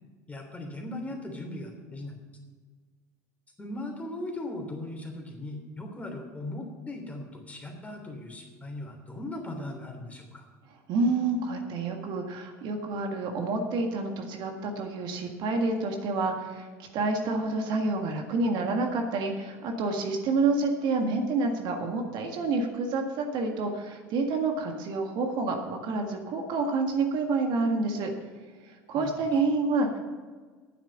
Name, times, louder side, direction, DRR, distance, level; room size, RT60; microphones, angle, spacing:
voice 1, 0.3-2.1 3.6-10.4 28.9-29.4, left 1 dB, 15° left, 2 dB, 3.2 m, -38 dB
voice 2, 10.9-16.7 16.9-28.1 28.7-30.0, right 3 dB, 60° right, 3 dB, 1.7 m, -28 dB
9.5 x 7.4 x 8.8 m, 1.5 s
hypercardioid pair, 85°, 8 cm